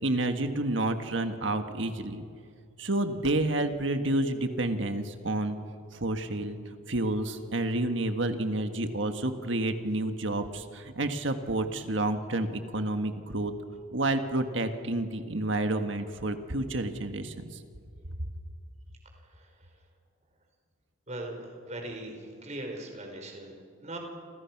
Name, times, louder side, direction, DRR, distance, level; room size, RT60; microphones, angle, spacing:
voice 1, 0.0-2.2 2.8-5.6 5.9-13.5 13.9-17.6, right 2 dB, 65° right, 7 dB, 1.8 m, -29 dB
voice 2, 21.1-23.5 23.8-24.0, right 1 dB, 35° right, 3 dB, 4.7 m, -39 dB
29.5 x 27.5 x 6.1 m, 2.2 s
head